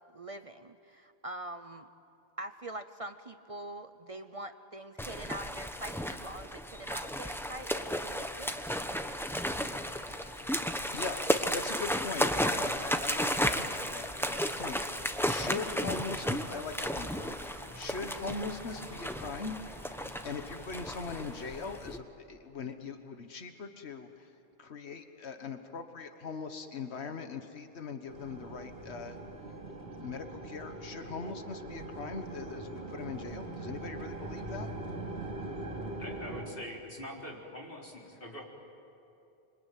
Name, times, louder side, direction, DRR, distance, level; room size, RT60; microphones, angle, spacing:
voice 1, 0.1-1.9 2.4-8.8, right 1 dB, 35° right, 9 dB, 0.8 m, -44 dB
sound 1, 5.0-22.0, equal, ahead, 0.9 m, -34 dB
sound 2, 9.5-21.8, left 1 dB, 25° left, 1.6 m, -53 dB
voice 2, 10.9-13.6 13.9-19.6 20.2-24.3 24.6-29.2 29.4-29.5 29.8-34.7, left 4 dB, 90° left, 7 dB, 1.5 m, -41 dB
sound 3, 28.1-36.4, right 2 dB, 70° right, 3.0 m, -41 dB
voice 3, 36.0-38.5, left 1 dB, 55° left, -2 dB, 4.1 m, -43 dB
26.0 x 24.5 x 9.2 m, 2.7 s
omnidirectional pair, 1.1 m